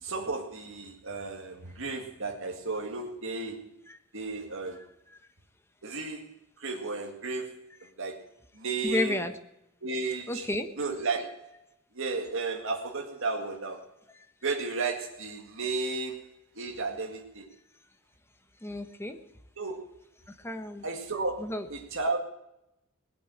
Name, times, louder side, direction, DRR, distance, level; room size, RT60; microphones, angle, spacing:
voice 1, 0.0-3.8 4.1-4.8 5.8-6.3 6.6-7.7 8.0-8.3 8.5-9.2 9.8-10.5 10.8-11.5 11.9-13.8 14.4-17.5 19.6-19.9 20.8-22.2, right 3 dB, 65° right, 1 dB, 2.0 m, -33 dB
voice 2, 8.8-9.3 10.3-10.7 18.6-19.2 20.3-20.8 21.4-21.7, left 1 dB, 10° left, 7 dB, 1.2 m, -32 dB
18.5 x 8.6 x 9.1 m, 0.84 s
head